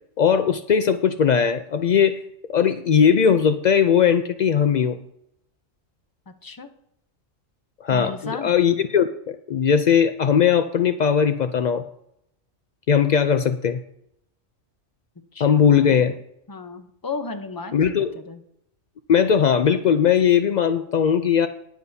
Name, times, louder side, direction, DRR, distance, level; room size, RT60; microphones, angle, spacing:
voice 1, 0.2-2.2 2.5-5.0 7.8-11.8 12.9-13.8 15.4-16.2 17.7-18.1 19.1-21.5, left 7 dB, 75° left, 9 dB, 0.4 m, -19 dB
voice 2, 6.3-6.7 7.9-8.6 15.3-16.0 16.5-18.4, left 4 dB, 20° left, 8 dB, 0.6 m, -35 dB
20.5 x 7.3 x 2.7 m, 0.77 s
omnidirectional pair, 1.3 m